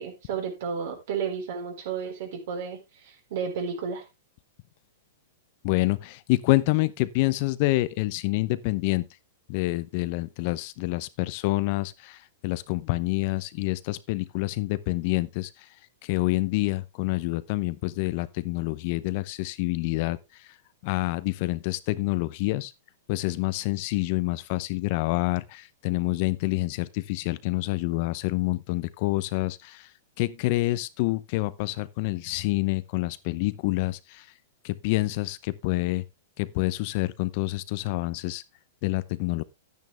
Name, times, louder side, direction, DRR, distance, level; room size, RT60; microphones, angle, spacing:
voice 1, 0.0-4.0, right 6 dB, 65° right, 4.2 m, -32 dB
voice 2, 5.6-9.1 9.5-15.5 16.0-20.2 20.8-22.7 23.1-29.9 30.2-34.3 34.6-36.0 36.4-38.4 38.8-39.4, left 20 dB, 50° left, 0.7 m, -27 dB
10.5 x 9.4 x 3.3 m
hypercardioid pair, 120°, 0 cm